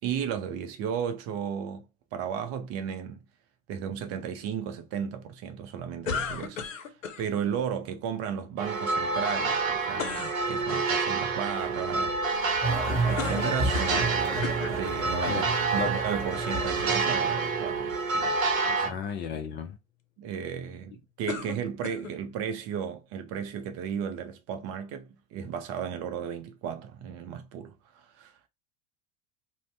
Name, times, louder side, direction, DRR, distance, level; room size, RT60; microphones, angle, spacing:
voice 1, 0.0-1.8 2.1-3.2 3.7-6.7 7.2-12.6 13.0-15.5 15.7-18.4 18.6-19.0 20.2-28.3, right 8 dB, 40° right, 0.5 m, -34 dB
sound 1, 6.1-7.2 10.0-10.4 13.2-14.2 14.4-14.8 15.6-15.7 21.3-22.2, left 6 dB, 75° left, 0.6 m, -34 dB
sound 2, 8.6-18.9, right 4 dB, 80° right, 0.7 m, -28 dB
sound 3, 12.6-17.6, right 2 dB, 5° right, 1.2 m, -32 dB
voice 2, 15.3-15.9 18.8-19.8, left 7 dB, 30° left, 0.4 m, -34 dB
2.5 x 2.0 x 3.2 m
figure-of-eight pair, 80°, 39 cm